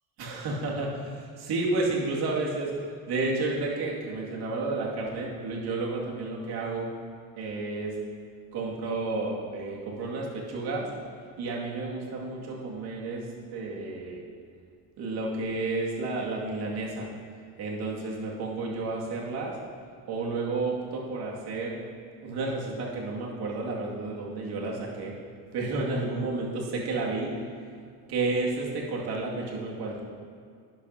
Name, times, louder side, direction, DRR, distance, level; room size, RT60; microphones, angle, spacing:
voice 1, 0.2-6.9 7.4-7.9 8.5-10.9 11.4-14.2 15.0-17.1 17.6-19.6 20.1-21.8 22.2-25.1 25.5-27.3 28.1-30.0, right 3 dB, 70° right, -3 dB, 2.3 m, -31 dB
11.5 x 10.5 x 2.8 m, 2.2 s
supercardioid pair, 85°, 41 cm